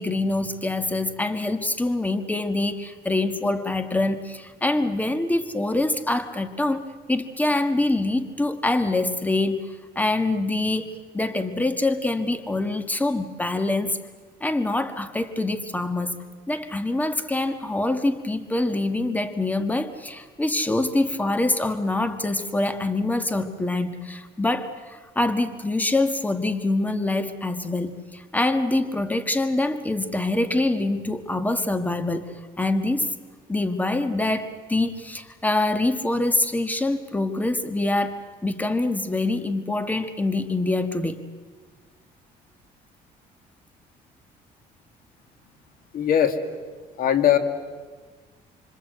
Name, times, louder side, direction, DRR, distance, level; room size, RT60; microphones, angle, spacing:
voice 1, 0.0-14.0 14.4-33.1 33.5-41.2, left 2 dB, 10° left, 9 dB, 1.6 m, -25 dB
voice 2, 45.9-46.4 47.0-47.4, left 10 dB, 60° left, 8 dB, 2.3 m, -19 dB
26.0 x 25.5 x 8.0 m, 1.4 s
cardioid pair, 110°, 17 cm